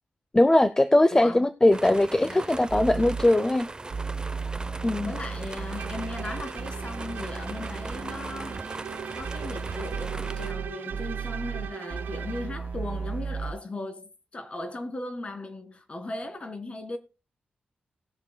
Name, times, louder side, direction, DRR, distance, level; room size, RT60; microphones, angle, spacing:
voice 1, 0.3-3.7 4.8-5.1, left 1 dB, 20° left, 0.6 m, -20 dB
voice 2, 1.1-1.5 2.2-2.5 5.0-8.6 9.2-17.0, left 2 dB, 40° left, 1.9 m, -37 dB
sound 1, 1.7-10.5, right 2 dB, 25° right, 0.7 m, -39 dB
sound 2, 2.7-3.2 3.9-13.5, right 5 dB, 50° right, 1.8 m, -35 dB
Bowed string instrument, 5.7-12.6, right 8 dB, 90° right, 0.5 m, -41 dB
19.5 x 7.1 x 2.2 m
wide cardioid pair, 95°, 3 cm